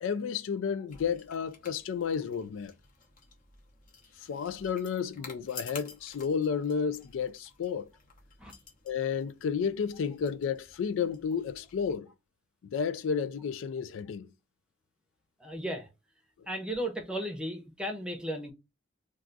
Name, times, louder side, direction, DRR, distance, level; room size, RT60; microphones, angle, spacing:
voice 1, 0.0-2.7 4.2-7.9 8.9-12.1 12.6-14.3, left 6 dB, 85° left, 0.4 m, -32 dB
sound 1, 0.9-12.0, left 5 dB, 45° left, 0.7 m, -52 dB
voice 2, 15.4-15.9 16.5-18.5, equal, 5° right, 0.6 m, -35 dB
2.4 x 2.3 x 3.8 m
head